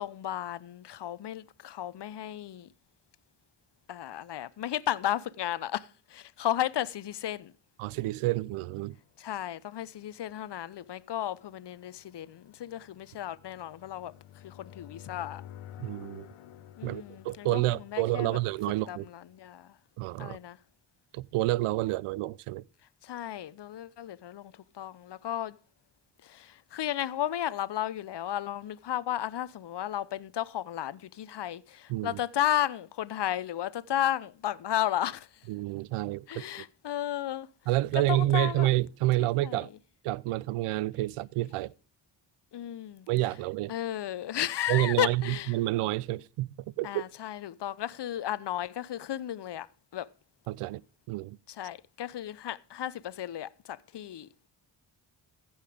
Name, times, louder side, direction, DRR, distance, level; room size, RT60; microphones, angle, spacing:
voice 1, 0.0-2.7 3.9-7.5 9.2-14.1 14.4-15.4 16.8-18.4 18.9-19.8 20.2-20.6 23.0-25.6 26.2-35.5 36.3-37.5 37.9-38.7 39.2-39.7 42.5-43.1 43.7-45.5 46.8-49.7 49.9-50.1 51.5-54.3, left 11 dB, 55° left, 0.8 m, -34 dB
voice 2, 7.8-9.0 15.8-16.3 16.8-19.1 20.0-20.4 21.1-22.6 31.9-32.2 35.5-36.5 37.7-39.7 40.0-41.7 43.1-43.7 44.7-47.0 50.5-50.8 51.1-51.4, right 17 dB, 85° right, 0.6 m, -29 dB
sound 1, 8.6-19.4, left 11 dB, 80° left, 0.9 m, -52 dB
15.0 x 5.7 x 4.9 m
supercardioid pair, 45°, 50 cm